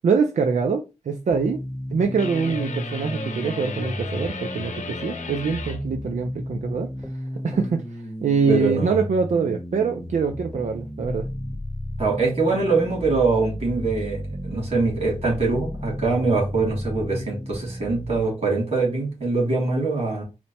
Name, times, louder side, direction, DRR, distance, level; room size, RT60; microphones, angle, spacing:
voice 1, 0.0-1.6 1.9-6.9 7.4-7.8 8.2-11.3, right 5 dB, 90° right, 0.4 m, -24 dB
sound 1, 1.3-18.2, equal, ahead, 0.8 m, -34 dB
sound 2, 2.2-5.8, left 4 dB, 85° left, 0.7 m, -35 dB
voice 2, 8.5-9.0 12.0-20.2, right 3 dB, 65° right, 2.6 m, -23 dB
4.3 x 2.1 x 4.1 m
wide cardioid pair, 70°, 12 cm